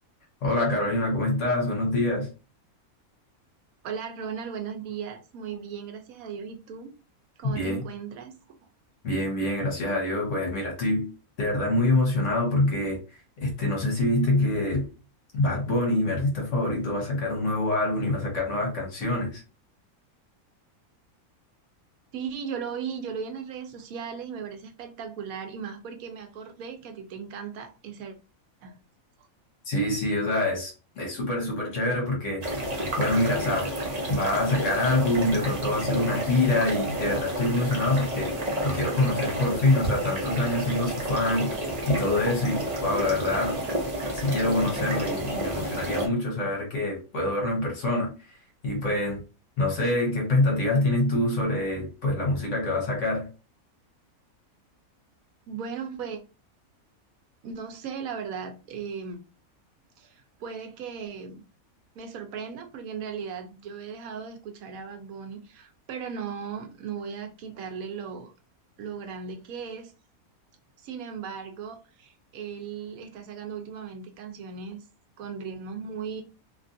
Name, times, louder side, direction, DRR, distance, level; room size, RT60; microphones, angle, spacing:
voice 1, 0.4-2.3 7.4-7.8 9.0-11.1 11.4-13.0 13.4-14.9 15.3-19.4 29.6-32.4 33.0-33.7 34.1-43.5 44.1-48.4 48.6-49.2 49.6-53.3, left 2 dB, 60° left, 1.3 m, -25 dB
voice 2, 3.8-6.9 7.4-8.6 22.1-28.2 28.6-28.7 55.5-56.2 57.4-59.2 60.0-61.4 62.0-68.3 68.8-69.9 70.8-74.8 75.2-76.2, right 6 dB, 75° right, 1.1 m, -37 dB
sound 1, 32.4-46.1, right 1 dB, 40° right, 0.7 m, -30 dB
2.9 x 2.4 x 2.5 m
omnidirectional pair, 1.5 m